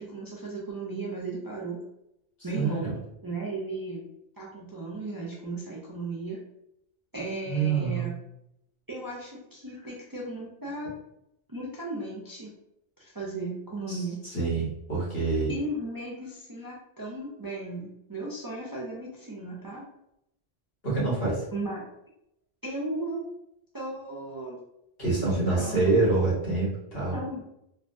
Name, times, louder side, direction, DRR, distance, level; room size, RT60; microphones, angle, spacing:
voice 1, 0.0-1.8 2.4-2.9 3.2-4.1 4.4-6.4 7.1-8.2 8.9-10.9 11.5-12.5 13.0-14.2 15.5-19.8 21.5-21.8 22.6-23.2 23.7-24.6 25.1-26.0 27.1-27.4, right 2 dB, 30° right, -5 dB, 0.4 m, -35 dB
voice 2, 2.5-2.9 7.4-8.1 13.9-14.0 14.3-15.5 20.8-21.4 25.0-27.2, right 3 dB, 70° left, -7 dB, 1.6 m, -26 dB
3.5 x 2.2 x 2.5 m, 0.82 s
omnidirectional pair, 1.0 m